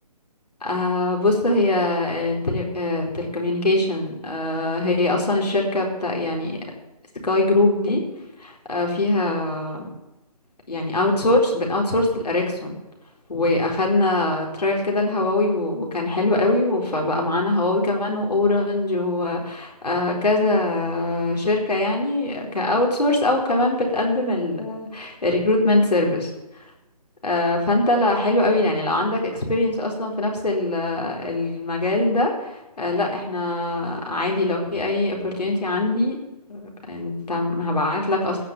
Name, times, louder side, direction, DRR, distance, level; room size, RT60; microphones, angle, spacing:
voice 1, 0.6-6.6 7.2-8.0 8.4-9.9 10.7-12.7 13.3-26.3 27.2-36.2 36.5-38.4, left 2 dB, 85° left, 0 dB, 4.3 m, -22 dB
16.0 x 6.1 x 8.0 m, 0.99 s
figure-of-eight pair, 150°, 20 cm